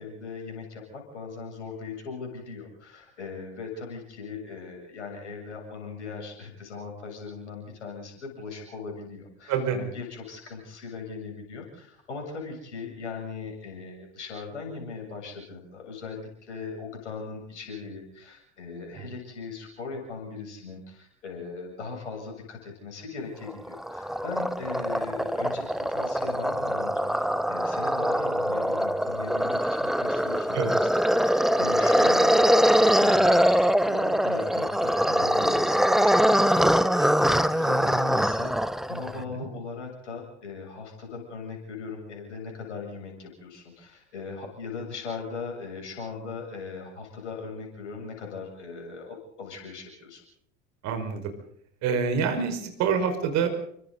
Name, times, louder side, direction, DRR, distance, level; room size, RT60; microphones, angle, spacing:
voice 1, 0.0-38.5 38.9-50.2, left 4 dB, 75° left, 2 dB, 7.9 m, -39 dB
sound 1, 23.5-39.2, equal, ahead, 0.8 m, -23 dB
voice 2, 50.8-51.2 51.8-53.5, right 6 dB, 50° right, 6 dB, 5.4 m, -26 dB
29.0 x 24.5 x 4.1 m, 0.68 s
figure-of-eight pair, 70°, 36 cm